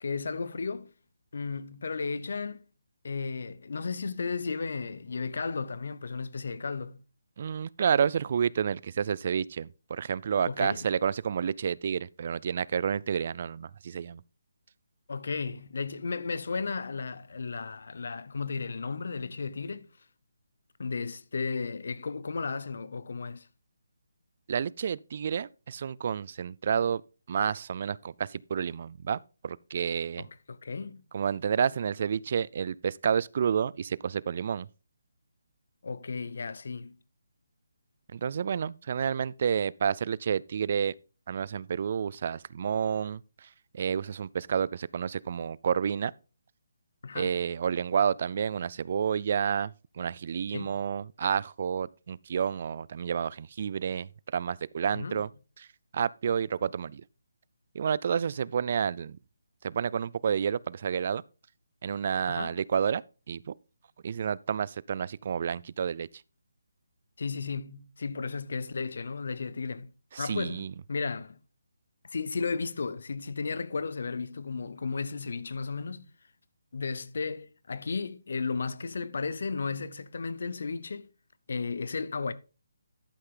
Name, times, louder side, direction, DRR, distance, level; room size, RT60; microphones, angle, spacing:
voice 1, 0.0-0.9 1.3-2.6 3.0-7.0 10.5-10.9 15.1-19.9 20.8-23.5 30.2-31.0 35.8-37.0 47.0-47.4 50.5-50.8 54.9-55.2 62.3-62.6 67.2-69.9 70.2-71.4 72.0-76.1 76.7-81.1 81.5-82.3, left 4 dB, 60° left, 0.8 m, -34 dB
voice 2, 7.4-14.2 24.5-27.0 27.3-30.3 31.1-34.7 38.1-40.9 41.3-43.5 43.7-46.1 47.2-55.3 55.6-55.7 55.9-57.0 57.7-59.2 59.6-61.2 61.8-63.5 64.0-66.1 70.1-70.7, right 7 dB, 40° right, 0.3 m, -30 dB
11.5 x 5.6 x 3.8 m
hypercardioid pair, 165°, 0 cm